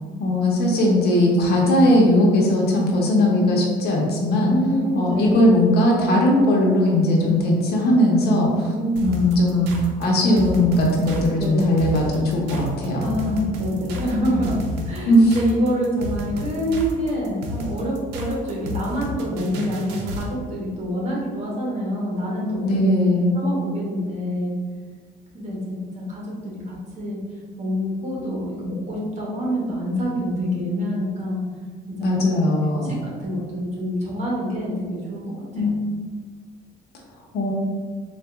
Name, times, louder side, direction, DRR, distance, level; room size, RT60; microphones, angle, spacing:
voice 1, 0.2-4.5 4.9-8.7 9.0-9.7 10.0-13.0 15.1-15.4 22.6-23.4 32.0-33.0 35.5-35.7 37.3-37.5, left 1 dB, 70° left, -1 dB, 0.9 m, -18 dB
voice 2, 4.5-5.5 7.2-7.6 8.7-9.1 11.4-11.8 13.0-22.6 23.3-24.5 25.3-27.2 27.6-31.4 32.0-32.4 33.0-35.7, equal, 40° right, -4 dB, 1.4 m, -26 dB
sound 1, 9.0-20.3, equal, 85° right, 0.6 m, -31 dB
3.9 x 2.5 x 3.4 m, 1.5 s
cardioid pair, 110°, 17 cm